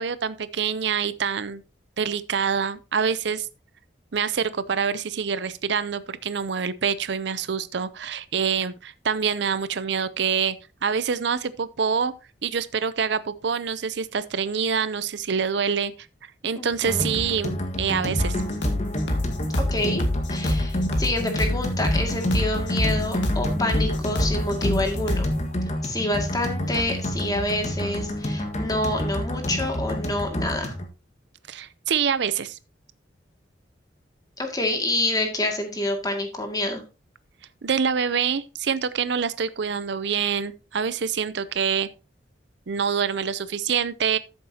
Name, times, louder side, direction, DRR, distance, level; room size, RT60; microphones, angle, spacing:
voice 1, 0.0-1.6 2.0-3.5 4.1-10.6 10.8-12.1 12.4-15.9 16.4-18.4 31.5-32.6 37.6-41.9 42.7-44.2, right 6 dB, 70° right, 0.6 m, -26 dB
voice 2, 16.6-17.1 19.7-20.0 20.3-25.3 25.8-30.7 34.4-36.8, left 1 dB, 20° left, 2.1 m, -27 dB
sound 1, 16.8-30.9, equal, 40° left, 1.6 m, -28 dB
sound 2, 18.2-25.4, left 1 dB, 80° left, 2.0 m, -26 dB
13.0 x 7.3 x 2.8 m
head